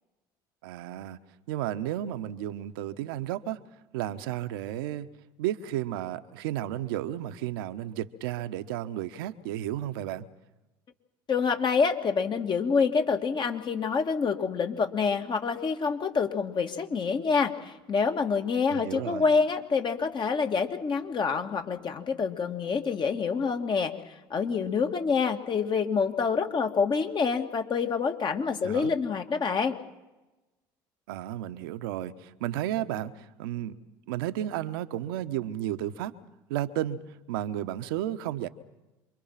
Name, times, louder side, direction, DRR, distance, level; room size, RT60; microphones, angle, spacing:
voice 1, 0.6-1.2 1.5-3.6 3.9-5.1 5.4-10.2 18.7-19.3 28.6-28.9 31.1-33.8 34.1-36.1 36.5-38.5, right 12 dB, 80° right, 11 dB, 1.2 m, -33 dB
voice 2, 11.3-23.9 24.3-29.7, left 5 dB, 40° left, 5 dB, 2.6 m, -27 dB
27.5 x 23.5 x 5.9 m, 1.0 s
hypercardioid pair, 70°, 12 cm